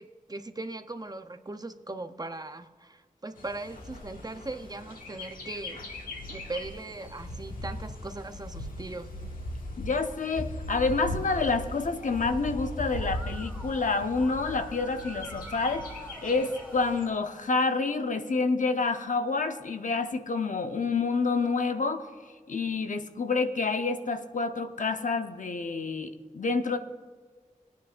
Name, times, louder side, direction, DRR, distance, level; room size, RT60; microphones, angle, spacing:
voice 1, 0.0-6.0 6.3-9.1, right 2 dB, 25° right, 8 dB, 0.7 m, -39 dB
Bird, 3.4-17.1, left 1 dB, 80° left, 1.8 m, -39 dB
voice 2, 9.8-15.9 16.2-22.1 22.5-26.8, left 4 dB, 65° left, 7 dB, 0.8 m, -28 dB
Musical instrument, 11.8-17.4, right 1 dB, 5° left, 1.5 m, -47 dB
21.0 x 9.3 x 2.5 m, 1.5 s
wide cardioid pair, 75°, 14 cm